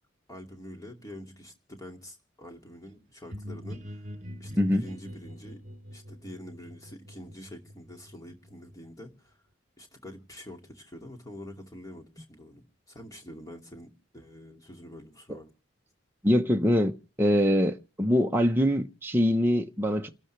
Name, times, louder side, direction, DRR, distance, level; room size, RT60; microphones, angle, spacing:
voice 1, 0.3-4.1 4.4-5.6 5.9-9.4 9.8-15.5, left 1 dB, 15° left, 2.4 m, -46 dB
sound 1, 3.3-8.9, equal, 35° right, 3.0 m, -44 dB
voice 2, 16.2-20.1, equal, 10° right, 1.0 m, -24 dB
29.0 x 12.5 x 3.3 m
head